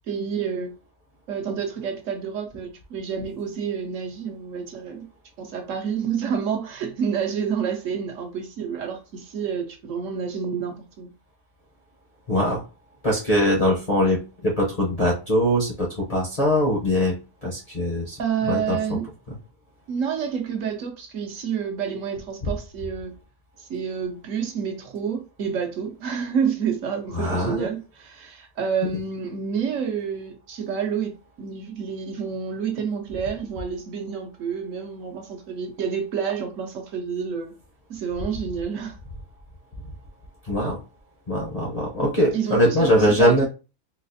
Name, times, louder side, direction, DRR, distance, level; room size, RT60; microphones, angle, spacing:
voice 1, 0.1-0.7 1.3-5.1 5.4-11.1 18.2-19.1 19.9-23.2 23.6-37.5 37.9-39.0 42.0-43.5, right 7 dB, 65° right, 0.9 m, -29 dB
voice 2, 12.3-12.6 13.0-17.1 17.4-18.2 18.4-19.0 27.1-27.7 40.5-40.8 41.3-43.4, equal, 35° left, 0.6 m, -22 dB
4.0 x 2.3 x 2.6 m
omnidirectional pair, 1.6 m